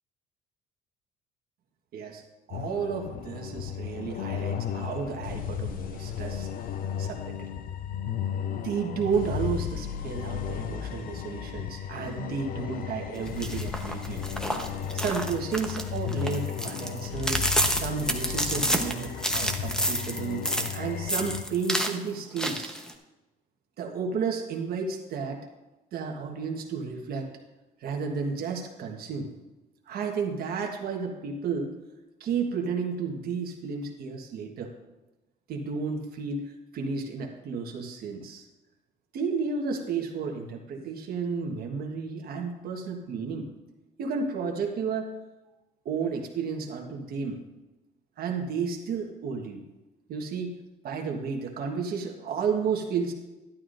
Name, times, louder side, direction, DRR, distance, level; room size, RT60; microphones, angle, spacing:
voice 1, 1.9-2.2 2.5-6.7 7.0-7.5 8.5-14.2 14.9-22.8 23.8-25.4 25.9-27.3 27.8-29.3 29.9-31.7 32.2-34.7 35.5-36.4 36.7-38.5 39.1-43.5 44.0-45.1 45.8-47.4 48.2-49.6 50.1-50.6 50.8-53.1, right 5 dB, 65° right, 1 dB, 1.4 m, -32 dB
sound 1, 2.5-21.4, left 8 dB, 55° left, 0.7 m, -34 dB
sound 2, 13.3-20.8 21.1-21.9 22.4-22.9, equal, 5° left, 1.0 m, -29 dB
12.5 x 11.5 x 2.6 m, 1.1 s
cardioid pair, 110°, 17 cm